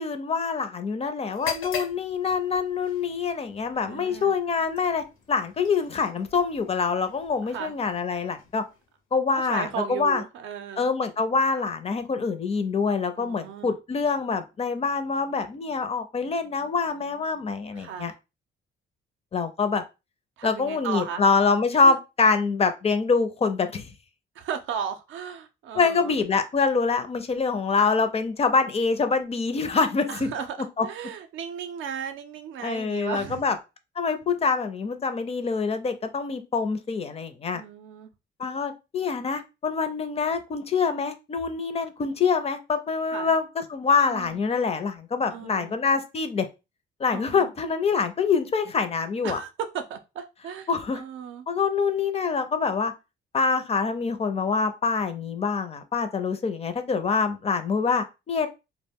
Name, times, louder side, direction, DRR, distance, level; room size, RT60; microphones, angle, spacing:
voice 1, 0.0-8.6 9.1-10.2 10.8-18.1 19.3-19.8 20.4-23.9 25.7-30.3 30.8-30.9 32.6-33.6 34.0-37.6 38.4-46.5 47.0-49.4 50.7-51.0 51.5-52.9 53.3-58.5, left 5 dB, 30° left, 9 dB, 0.4 m, -25 dB
sound 1, 1.3-9.1, left 7 dB, 80° left, 0.7 m, -42 dB
voice 2, 3.9-4.4 7.4-7.7 9.4-10.9 13.2-13.7 17.7-18.1 20.4-21.2 21.8-22.0 24.4-26.1 30.1-33.5 37.5-38.1 43.1-43.3 44.1-44.4 45.3-45.8 47.1-47.5 49.2-51.4, right 7 dB, 75° right, 8 dB, 0.5 m, -35 dB
2.3 x 2.0 x 3.5 m, 0.27 s
cardioid pair, 90°, 20 cm